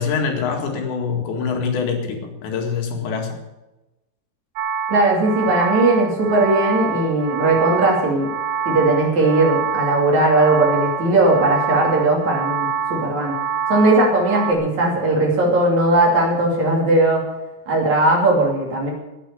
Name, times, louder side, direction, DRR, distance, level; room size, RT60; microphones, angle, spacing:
voice 1, 0.0-3.4, left 5 dB, 85° left, 3 dB, 4.3 m, -24 dB
sound 1, 4.6-14.5, right 7 dB, 70° right, 2.4 m, -26 dB
voice 2, 4.9-8.3 8.7-13.3 13.7-17.2 17.7-18.9, right 2 dB, 45° right, -1 dB, 3.8 m, -18 dB
11.5 x 10.0 x 8.3 m, 1.0 s
omnidirectional pair, 5.0 m